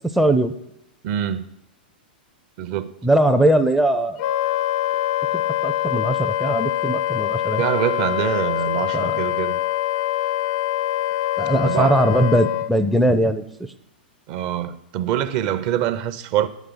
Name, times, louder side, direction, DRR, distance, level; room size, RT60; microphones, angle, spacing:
voice 1, 0.1-0.5 3.0-4.2 5.3-7.6 8.9-9.2 11.4-13.4, right 1 dB, ahead, 0.4 m, -20 dB
voice 2, 1.0-1.4 2.6-2.9 7.6-9.6 11.7-12.0 14.3-16.5, right 11 dB, 45° right, 0.6 m, -24 dB
Wind instrument woodwind instrument, 4.2-12.7, left 13 dB, 55° left, 0.5 m, -24 dB
10.0 x 8.1 x 3.8 m
hypercardioid pair, 115°, 5 cm